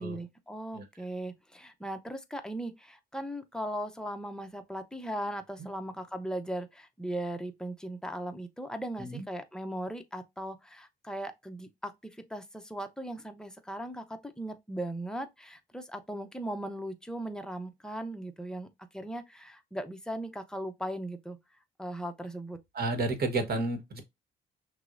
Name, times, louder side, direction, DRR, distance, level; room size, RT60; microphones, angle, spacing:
voice 1, 0.0-21.4 21.8-22.6, right 1 dB, 5° left, 0.6 m, -38 dB
voice 2, 22.7-24.0, right 2 dB, 50° right, 1.1 m, -31 dB
5.8 x 2.0 x 2.5 m
cardioid pair, 90°, 20 cm